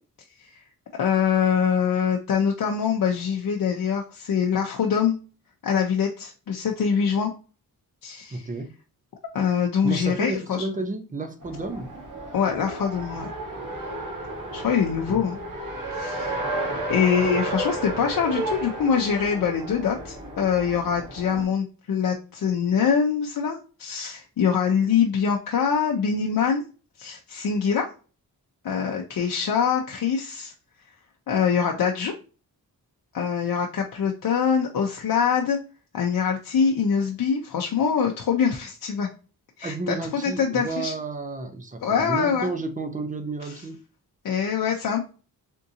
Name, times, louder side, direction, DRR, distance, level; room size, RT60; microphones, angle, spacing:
voice 1, 1.0-5.2 5.6-7.3 8.0-8.5 9.3-10.7 12.3-13.3 14.5-15.4 15.9-16.5 16.9-26.6 27.0-27.9 28.6-30.5 31.3-32.1 33.1-35.6 35.9-39.1 39.6-40.9 41.8-42.5 43.4-43.6 44.2-45.0, left 7 dB, 65° left, 0.6 m, -24 dB
voice 2, 8.3-8.8 9.8-11.9 15.1-15.3 39.6-43.8, right 3 dB, 20° right, 0.5 m, -31 dB
Race car auto racing, 11.4-21.4, right 2 dB, 55° right, 1.2 m, -32 dB
3.6 x 2.6 x 2.6 m
wide cardioid pair, 145°, 37 cm